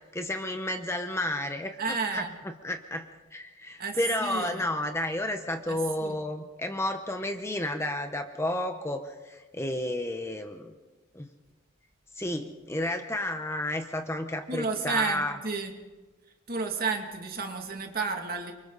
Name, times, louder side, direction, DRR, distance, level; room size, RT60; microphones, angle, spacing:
voice 1, 0.1-1.8 2.1-10.7 11.1-11.3 12.1-15.4, left 1 dB, 15° left, 6 dB, 1.0 m, -31 dB
voice 2, 1.8-2.3 3.8-4.6 5.7-5.8 6.0-6.2 14.5-15.7 16.5-18.5, right 4 dB, 45° right, 3 dB, 2.5 m, -31 dB
28.5 x 24.5 x 4.1 m, 1.2 s
head